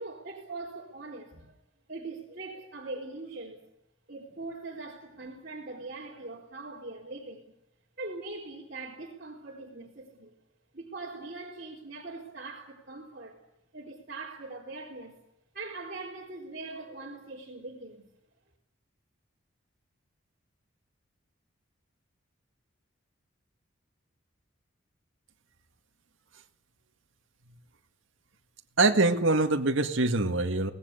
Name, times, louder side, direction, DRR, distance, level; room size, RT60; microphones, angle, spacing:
voice 1, 0.0-1.5 1.9-3.6 4.1-7.5 8.0-10.3 10.7-13.4 13.7-15.2 15.5-18.1, right 3 dB, 45° right, 4.1 m, -41 dB
voice 2, 28.8-30.7, right 2 dB, 70° right, 1.9 m, -24 dB
24.0 x 18.5 x 8.3 m
head